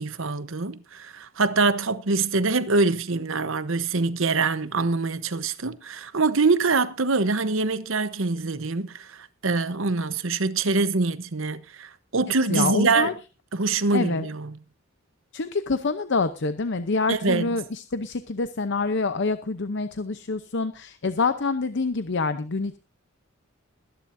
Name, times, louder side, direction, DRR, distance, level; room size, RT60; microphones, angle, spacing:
voice 1, 0.0-13.1 13.5-14.6 17.1-17.5, right 3 dB, 70° right, 1.0 m, -24 dB
voice 2, 12.5-13.1 13.9-14.2 15.3-22.8, left 3 dB, 60° left, 0.8 m, -26 dB
21.5 x 10.5 x 2.7 m
head